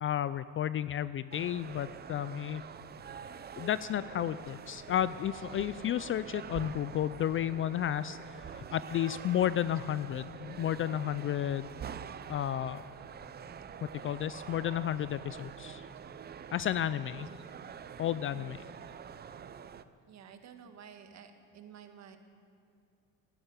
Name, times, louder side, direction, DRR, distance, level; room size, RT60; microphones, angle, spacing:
voice 1, 0.0-2.6 3.6-11.7 12.3-12.8 13.8-15.9 16.5-17.3 18.0-18.6, left 10 dB, 35° left, 15 dB, 0.4 m, -32 dB
sound 1, 1.3-19.8, right 7 dB, 25° right, 0.6 m, -46 dB
Thunder, 2.5-11.4, right 2 dB, 65° right, 3.8 m, -63 dB
sound 2, 10.0-15.4, left 1 dB, 20° left, 4.0 m, -63 dB
voice 2, 17.2-17.5 18.3-19.0 20.1-22.2, right 7 dB, 45° right, 7 dB, 1.6 m, -53 dB
13.5 x 9.8 x 9.7 m, 2.4 s
supercardioid pair, 100°, 36 cm